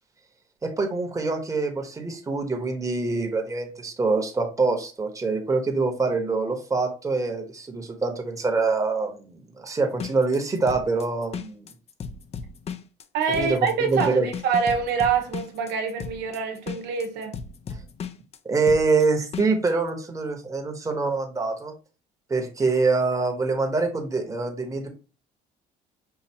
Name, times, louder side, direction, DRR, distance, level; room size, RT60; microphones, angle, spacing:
voice 1, 0.6-11.6 13.3-14.3 18.4-21.7 22.3-24.9, right 3 dB, 20° right, 1.0 m, -25 dB
sound 1, 9.9-19.7, left 6 dB, 40° left, 0.4 m, -36 dB
voice 2, 13.1-17.4, right 6 dB, 85° right, 1.0 m, -25 dB
5.6 x 2.6 x 2.8 m
cardioid pair, 110°, 17 cm